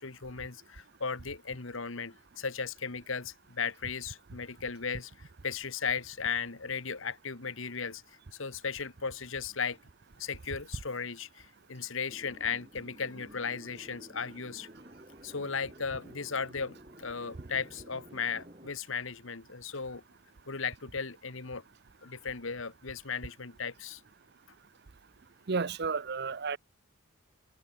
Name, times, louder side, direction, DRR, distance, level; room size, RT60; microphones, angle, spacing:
voice 1, 0.0-8.0 8.3-9.8 10.2-14.7 15.2-20.0 20.5-21.6 22.0-24.0, left 5 dB, 65° left, 1.4 m, -36 dB
sound 1, 12.1-18.7, equal, 30° right, 6.3 m, -52 dB
voice 2, 25.5-26.6, right 4 dB, 50° right, 0.6 m, -32 dB
head